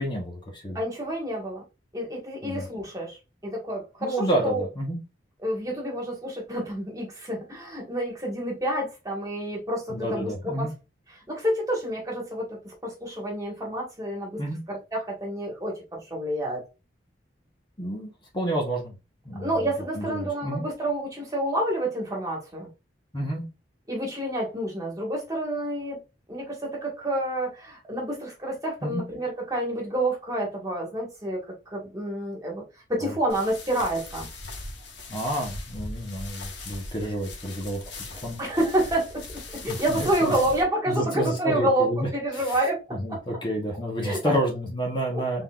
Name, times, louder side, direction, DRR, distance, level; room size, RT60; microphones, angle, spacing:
voice 1, 0.0-0.8 2.4-2.7 4.0-5.0 9.9-10.7 14.4-14.6 17.8-18.9 19.2-19.5 19.9-20.6 23.1-23.5 28.8-29.0 33.0-33.1 35.1-38.4 39.6-40.4 40.9-42.6 42.9-45.4, right 1 dB, 25° left, 1.1 m, -29 dB
voice 2, 0.7-1.6 1.9-4.6 5.4-10.7 11.3-14.4 14.7-16.7 19.4-22.7 23.9-26.0 26.3-32.6 32.9-34.3 38.4-39.2 39.5-43.2 44.0-44.3 45.1-45.2, right 1 dB, 20° right, 1.6 m, -29 dB
sound 1, 33.3-40.6, left 2 dB, 70° left, 1.0 m, -39 dB
3.8 x 3.7 x 2.4 m
head